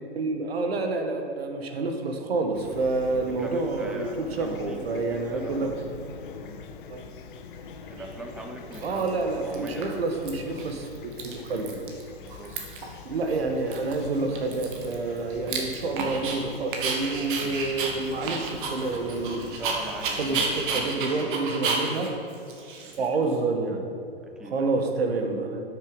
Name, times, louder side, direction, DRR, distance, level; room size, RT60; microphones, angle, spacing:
voice 1, 0.1-5.7 6.9-7.0 8.8-11.8 13.0-19.5 20.2-22.1 23.0-23.9 24.4-25.7, right 3 dB, 80° right, 4 dB, 1.4 m, -28 dB
Fowl / Chirp tweet, 2.5-20.8, left 6 dB, 55° left, 0.8 m, -44 dB
voice 2, 3.1-5.8 7.9-10.0 12.2-12.5 17.3-17.6 19.6-21.4 22.9-23.1 24.2-24.8, right 2 dB, ahead, 3 dB, 0.4 m, -41 dB
Dog, 8.0-8.1 8.7-9.2 9.5-10.3 10.6-10.7 11.0-12.0 12.3-12.9 13.3-13.4 13.7-16.4 16.7-23.3, right 4 dB, 55° right, 1.6 m, -32 dB
8.3 x 6.6 x 5.3 m, 2.6 s
hypercardioid pair, 130°, 31 cm